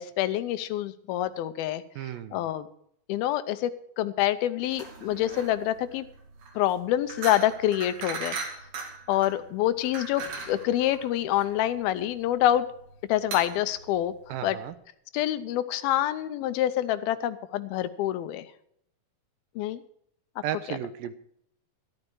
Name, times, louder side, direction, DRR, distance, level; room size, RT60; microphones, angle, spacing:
voice 1, 0.0-1.8 2.3-2.7 3.1-3.7 4.0-6.0 6.6-8.4 9.1-12.7 13.1-14.1 14.4-14.6 15.1-18.5 19.6-19.8 20.7-20.8, left 13 dB, 80° left, 13 dB, 2.4 m, -26 dB
voice 2, 2.0-2.5 14.3-14.7 20.4-21.1, right 12 dB, 75° right, 12 dB, 2.3 m, -34 dB
sound 1, 4.7-14.7, right 4 dB, 55° right, 3.6 m, -39 dB
13.0 x 12.0 x 4.6 m, 0.71 s
omnidirectional pair, 4.6 m